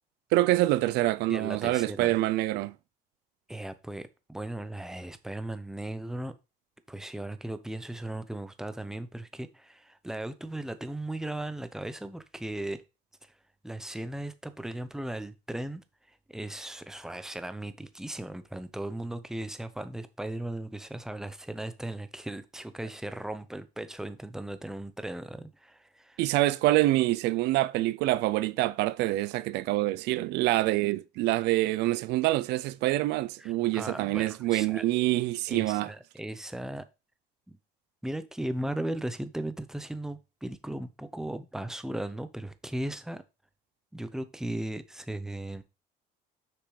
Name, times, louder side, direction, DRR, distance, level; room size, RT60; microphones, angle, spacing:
voice 1, 0.3-2.7 26.2-35.9, right 17 dB, 85° right, 0.4 m, -26 dB
voice 2, 1.3-2.2 3.5-6.3 6.9-12.8 13.6-15.8 16.1-26.2 33.4-34.8 35.5-36.9 37.5-37.6 38.0-43.2 43.9-45.6, right 1 dB, 5° right, 0.7 m, -37 dB
6.6 x 5.9 x 3.2 m
cardioid pair, 110°, 17 cm